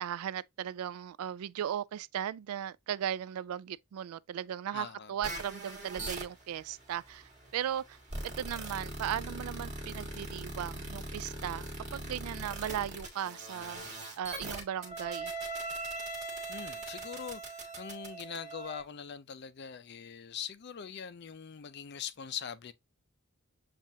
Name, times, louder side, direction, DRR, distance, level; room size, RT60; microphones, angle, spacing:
voice 1, 0.0-7.2 7.5-8.0 8.2-13.9 14.2-15.3, right 10 dB, 85° right, 0.3 m, -37 dB
voice 2, 4.7-5.1 16.5-22.7, left 7 dB, 50° left, 0.4 m, -42 dB
sound 1, 5.2-18.8, right 2 dB, 35° right, 1.5 m, -41 dB
7.3 x 2.5 x 2.7 m
head